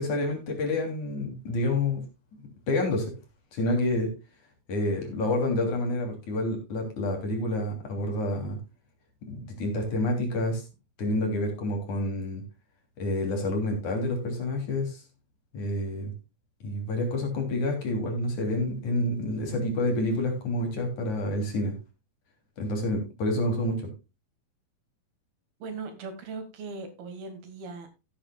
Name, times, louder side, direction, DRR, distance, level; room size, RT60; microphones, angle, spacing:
voice 1, 0.0-2.0 2.7-3.1 3.5-4.1 4.7-8.6 9.3-10.6 11.0-12.4 13.0-15.0 15.5-16.1 16.6-21.7 22.6-23.8, left 1 dB, 55° left, 3 dB, 4.3 m, -28 dB
voice 2, 25.6-27.9, right 4 dB, 80° right, 7 dB, 4.1 m, -39 dB
15.5 x 8.7 x 2.3 m, 0.28 s
omnidirectional pair, 4.3 m